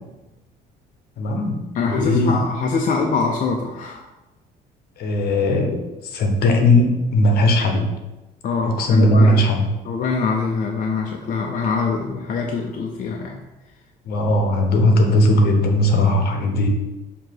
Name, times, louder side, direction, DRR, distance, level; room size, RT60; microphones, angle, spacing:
voice 1, 1.2-1.6 1.9-2.4 5.0-7.9 8.6-9.7 14.0-16.7, left 1 dB, 70° left, 4 dB, 1.1 m, -18 dB
voice 2, 1.7-4.0 8.4-9.4 9.8-13.4, left 4 dB, 50° left, 1 dB, 0.7 m, -24 dB
7.0 x 2.9 x 4.6 m, 1.0 s
cardioid pair, 110°, 17 cm